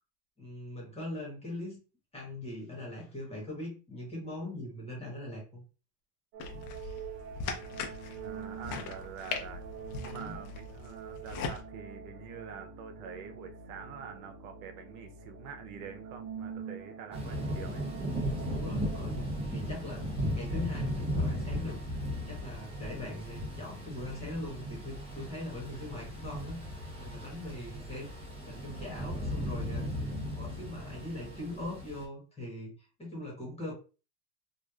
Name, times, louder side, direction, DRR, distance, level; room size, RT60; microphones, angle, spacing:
voice 1, 0.4-1.8 2.1-5.6 6.5-7.0 10.1-10.4 18.4-19.2 19.4-21.8 22.1-28.1 28.4-32.7 33.0-33.7, left 1 dB, 15° left, 1.2 m, -41 dB
sound 1, 6.3-19.2, right 7 dB, 60° right, 0.8 m, -45 dB
sound 2, 6.4-11.6, left 5 dB, 80° left, 0.8 m, -40 dB
voice 2, 8.2-9.7 9.9-17.9, right 6 dB, 90° right, 0.8 m, -46 dB
Thunder / Rain, 17.1-32.0, equal, 15° right, 0.8 m, -36 dB
3.1 x 2.4 x 2.4 m
cardioid pair, 150°, 43 cm